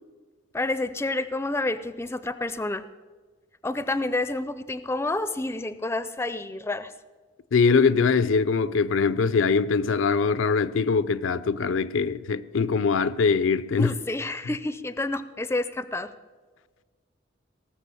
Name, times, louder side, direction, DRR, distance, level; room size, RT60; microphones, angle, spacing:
voice 1, 0.5-2.8 3.6-6.9 13.8-16.1, left 2 dB, 15° left, 0.4 m, -29 dB
voice 2, 7.5-13.9, left 5 dB, 80° left, 0.5 m, -22 dB
18.0 x 7.0 x 6.9 m
head